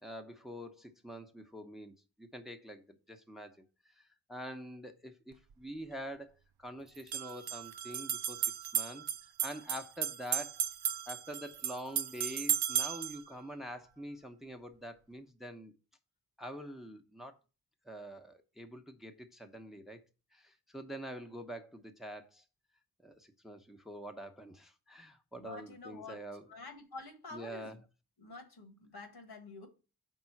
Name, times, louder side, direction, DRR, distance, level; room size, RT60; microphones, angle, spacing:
voice 1, 0.0-3.6 4.0-6.3 6.6-9.1 9.4-10.6 11.1-15.7 16.4-17.4 17.8-20.0 20.3-22.4 23.0-26.5 27.3-27.8, equal, ahead, 0.8 m, -46 dB
sound 1, 5.3-5.4 6.9-13.2, right 9 dB, 80° right, 0.5 m, -35 dB
voice 2, 25.4-26.2 26.5-27.8 28.2-29.7, left 3 dB, 80° left, 1.6 m, -48 dB
5.4 x 3.7 x 5.8 m
cardioid pair, 45°, 37 cm